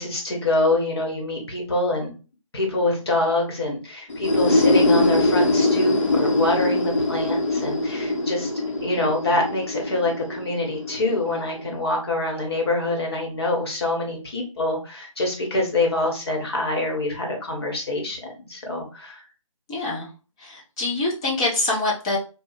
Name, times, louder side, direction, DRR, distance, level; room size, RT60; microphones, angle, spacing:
voice 1, 0.0-2.1 2.5-8.5 8.8-19.2, left 2 dB, 50° left, 0 dB, 1.2 m, -25 dB
sound 1, 4.1-11.7, left 2 dB, 65° left, 1.0 m, -22 dB
voice 2, 19.7-20.1 20.4-22.2, left 2 dB, 10° left, -4 dB, 0.4 m, -25 dB
2.7 x 2.3 x 4.0 m, 0.34 s
figure-of-eight pair, 160°, 17 cm